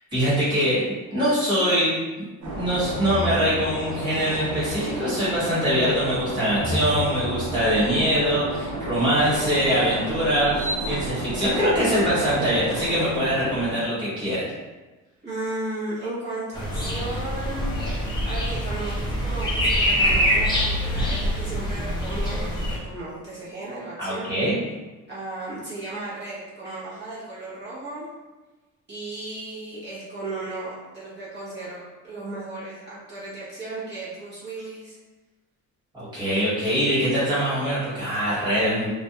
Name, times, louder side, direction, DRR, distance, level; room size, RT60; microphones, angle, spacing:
voice 1, 0.1-0.8 1.1-1.9 2.5-14.5 24.0-24.6 35.9-38.9, equal, 15° right, -11 dB, 1.3 m, -23 dB
sound 1, 2.4-13.8, right 1 dB, 70° right, 0.8 m, -31 dB
voice 2, 15.2-17.6 18.2-24.3 25.1-28.1 28.9-35.0, right 2 dB, 35° right, -9 dB, 0.8 m, -35 dB
sound 2, 16.5-22.8, equal, 15° left, 0.4 m, -24 dB
2.5 x 2.1 x 2.7 m, 1.2 s
cardioid pair, 155°, 31 cm